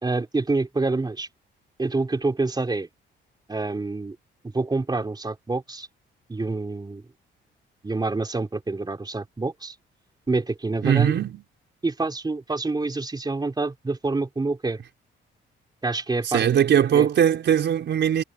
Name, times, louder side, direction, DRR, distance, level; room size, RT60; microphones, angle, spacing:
voice 1, 0.0-1.3 1.8-2.9 3.5-4.2 4.4-5.9 6.3-7.0 7.8-9.8 10.3-11.2 11.8-14.8 15.8-16.5 16.9-17.1, right 3 dB, 20° right, 3.5 m, -27 dB
voice 2, 10.8-11.4 16.2-18.2, right 9 dB, 65° right, 4.8 m, -20 dB
cardioid pair, 90°, 20 cm